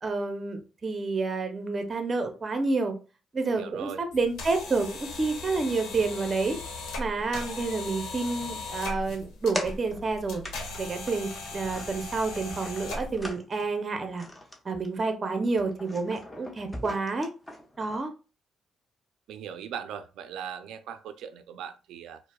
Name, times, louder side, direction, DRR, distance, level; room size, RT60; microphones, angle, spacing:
voice 1, 0.0-2.9 3.3-6.6 7.0-10.4 10.8-14.3 14.6-17.3 17.8-18.1, right 3 dB, 35° right, 6 dB, 0.7 m, -29 dB
voice 2, 3.5-4.0 19.3-22.2, right 8 dB, 85° right, 11 dB, 0.4 m, -39 dB
sound 1, 4.1-13.3, left 3 dB, 85° left, 1.0 m, -38 dB
sound 2, 9.5-10.1 10.4-10.8 11.1-13.7 14.2-14.6 14.8-15.1 15.4-18.0, left 1 dB, 15° left, 0.8 m, -40 dB
4.5 x 2.0 x 2.3 m, 0.34 s
cardioid pair, 90°, 0 cm